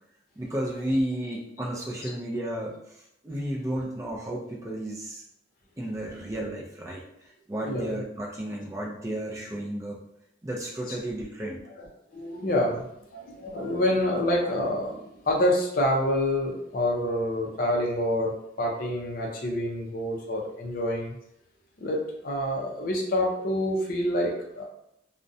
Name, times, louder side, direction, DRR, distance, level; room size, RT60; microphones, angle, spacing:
voice 1, 0.4-5.2 5.8-10.0 10.4-11.6, right 1 dB, 15° right, -3 dB, 0.4 m, -33 dB
voice 2, 11.7-12.8 13.1-18.3 18.6-21.2 21.8-24.7, left 1 dB, 45° left, -1 dB, 0.4 m, -27 dB
2.4 x 2.1 x 2.6 m, 0.76 s
head